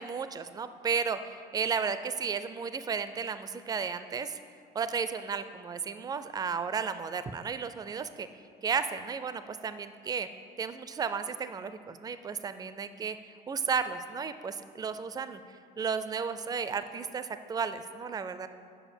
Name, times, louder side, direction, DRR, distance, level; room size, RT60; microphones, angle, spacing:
voice 1, 0.0-4.4 4.7-8.3 8.6-10.3 10.6-13.2 13.5-15.4 15.8-18.5, right 6 dB, 20° right, 11 dB, 0.4 m, -33 dB
7.1 x 5.4 x 7.3 m, 2.3 s
cardioid pair, 110°, 17 cm